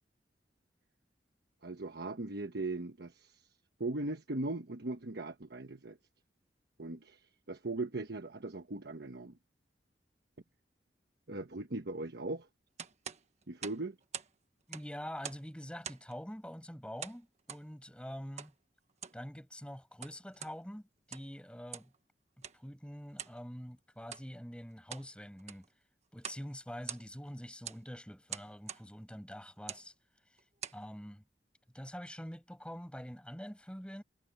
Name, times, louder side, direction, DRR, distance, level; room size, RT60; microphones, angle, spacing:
voice 1, 1.6-3.5 3.8-6.0 6.8-9.4 11.3-12.5 13.5-14.0, right 2 dB, 65° right, 1.2 m, -39 dB
sound 1, 12.8-14.3 14.6-15.5 15.8-16.2 17.0-17.7 18.4-18.5 18.9-19.2 19.8-20.6 21.0-21.4 21.7-22.0 22.4-22.6 23.2-23.4 24.0-24.3 24.7-25.1 25.4-25.7 26.2-26.5 26.7-27.3 27.6-27.8 28.3-28.9 29.6-29.9 30.4-30.8, right 8 dB, 40° right, 1.4 m, -45 dB
voice 2, 14.7-18.5 19.1-21.9 22.4-25.7 26.1-29.9 30.7-31.2 31.7-34.0, equal, 5° left, 7.6 m, -45 dB
head